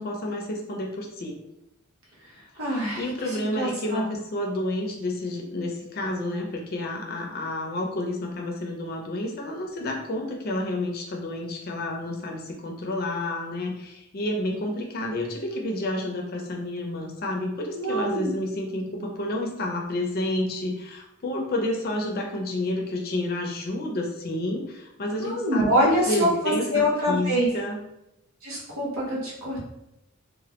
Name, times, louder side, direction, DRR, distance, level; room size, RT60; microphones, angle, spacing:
voice 1, 0.0-1.4 3.0-27.8, left 1 dB, 45° left, 1 dB, 0.4 m, -30 dB
voice 2, 2.6-3.0 3.6-4.1 15.5-15.6 17.7-18.3 25.2-27.5 28.4-29.6, equal, 80° right, -5 dB, 0.9 m, -25 dB
2.2 x 2.0 x 2.8 m, 0.87 s
head